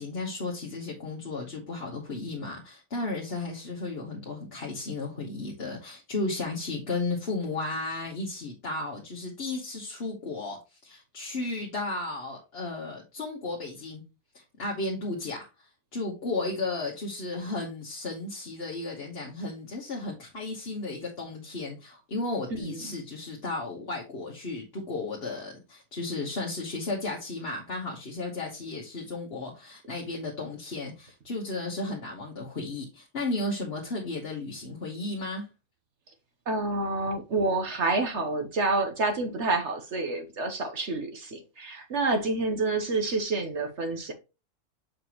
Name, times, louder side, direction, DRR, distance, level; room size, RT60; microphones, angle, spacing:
voice 1, 0.0-14.0 14.3-35.5, left 2 dB, 45° left, 1.4 m, -34 dB
voice 2, 22.6-22.9 36.5-44.1, right 3 dB, 55° right, 1.2 m, -28 dB
6.7 x 5.1 x 2.9 m
omnidirectional pair, 1.6 m